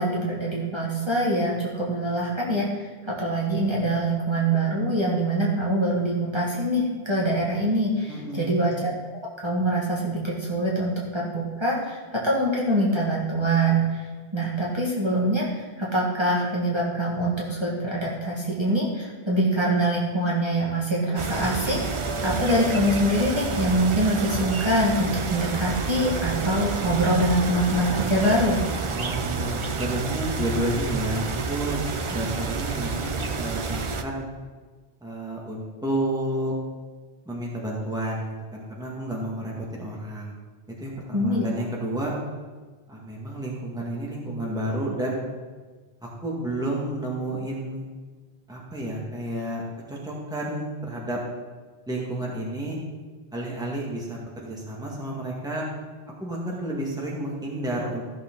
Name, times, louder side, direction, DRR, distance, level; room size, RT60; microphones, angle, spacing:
voice 1, 0.0-2.7 3.1-8.9 9.4-14.0 14.3-28.6 41.1-41.4, right 1 dB, 25° right, -6 dB, 1.8 m, -24 dB
voice 2, 8.1-8.6 28.9-31.8 32.1-34.3 35.0-36.5 37.3-40.3 40.8-42.1 42.9-45.2 46.0-47.8 48.5-49.6 49.9-51.2 51.9-52.8 53.3-55.7 56.2-58.0, right 1 dB, 5° right, -4 dB, 1.8 m, -31 dB
sound 1, 21.2-34.0, right 4 dB, 40° right, 0.4 m, -29 dB
14.5 x 6.8 x 3.9 m, 1.4 s
omnidirectional pair, 1.1 m